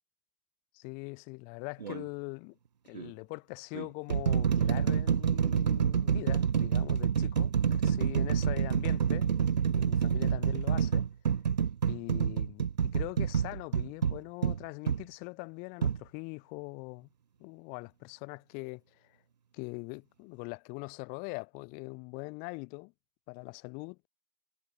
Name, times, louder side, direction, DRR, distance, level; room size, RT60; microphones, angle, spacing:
voice 1, 0.7-2.6 2.9-9.3 9.7-11.1 11.9-17.1 17.4-19.1 19.5-22.9 23.3-24.0, left 32 dB, 40° left, 3.4 m, -42 dB
sound 1, 1.8-2.1 2.9-3.1 3.7-15.0 15.8-16.0, right 7 dB, 85° right, 0.6 m, -28 dB
figure-of-eight pair, 105°, 21 cm